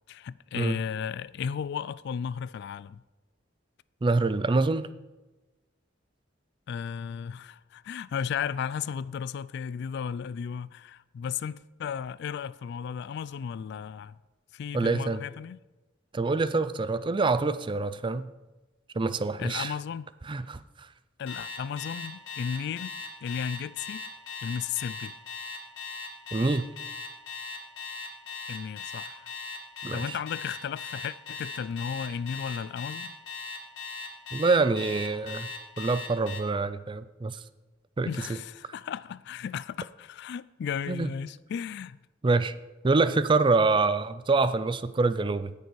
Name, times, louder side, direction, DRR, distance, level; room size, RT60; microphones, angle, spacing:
voice 1, 0.1-3.0 6.7-14.2 14.5-15.6 19.4-20.1 21.2-24.1 24.4-25.2 28.5-29.3 29.9-33.1 38.1-42.0, left 7 dB, 60° left, 0.3 m, -34 dB
voice 2, 4.0-4.9 14.7-15.2 16.1-18.3 18.9-19.7 20.3-20.6 26.3-26.6 29.8-30.2 34.3-35.5 35.8-37.4 38.0-38.1 40.9-41.1 42.2-42.5 42.8-45.5, right 3 dB, 25° right, 0.4 m, -25 dB
Alarm, 21.3-36.4, left 4 dB, 80° left, 2.2 m, -38 dB
18.0 x 6.7 x 4.7 m
head